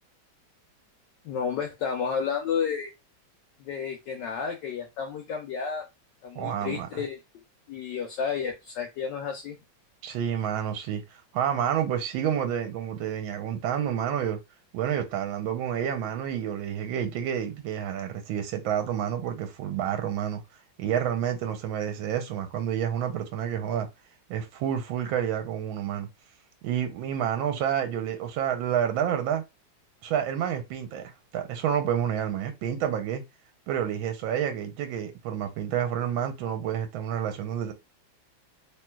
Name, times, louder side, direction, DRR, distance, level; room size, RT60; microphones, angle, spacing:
voice 1, 1.2-2.9 3.6-5.9 6.2-7.2 7.7-9.6, left 6 dB, 70° left, 1.2 m, -31 dB
voice 2, 6.3-7.0 10.0-11.0 11.3-14.4 14.7-20.4 20.8-23.9 24.3-26.1 26.6-29.4 30.0-33.2 33.7-37.7, right 9 dB, 85° right, 1.4 m, -29 dB
3.1 x 3.0 x 2.2 m
omnidirectional pair, 2.2 m